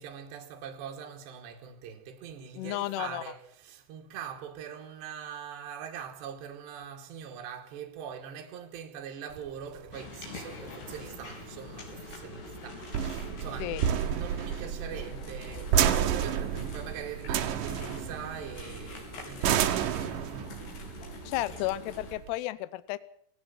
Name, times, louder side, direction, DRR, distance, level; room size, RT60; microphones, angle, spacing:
voice 1, 0.0-20.6, right 8 dB, 65° right, 4.2 m, -43 dB
voice 2, 2.6-3.2 13.6-13.8 21.2-23.0, left 16 dB, 75° left, 2.6 m, -33 dB
sound 1, 9.3-22.3, right 9 dB, 80° right, 1.9 m, -31 dB
sound 2, 9.9-22.1, left 3 dB, 55° left, 6.4 m, -45 dB
18.0 x 17.5 x 9.0 m
omnidirectional pair, 5.6 m